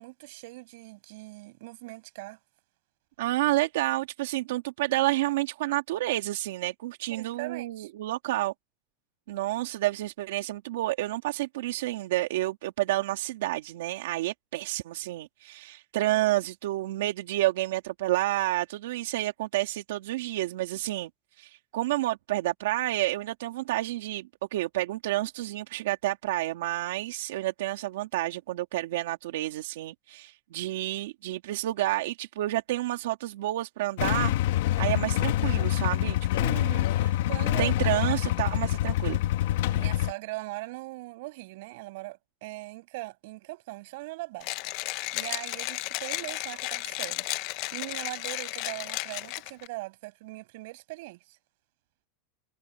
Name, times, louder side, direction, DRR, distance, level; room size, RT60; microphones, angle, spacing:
voice 1, 0.0-2.4 7.1-7.9 36.5-38.4 39.7-44.5 45.1-51.4, right 22 dB, 55° right, 6.0 m, -40 dB
voice 2, 3.2-8.5 9.3-21.1 21.4-34.3 34.8-36.7 37.6-39.2, right 16 dB, 80° right, 2.7 m, -30 dB
Motorcycle / Engine starting / Idling, 34.0-40.1, left 13 dB, 65° left, 1.4 m, -26 dB
Mechanisms, 44.4-49.7, left 20 dB, 45° left, 0.7 m, -34 dB
supercardioid pair, 175°, 0 cm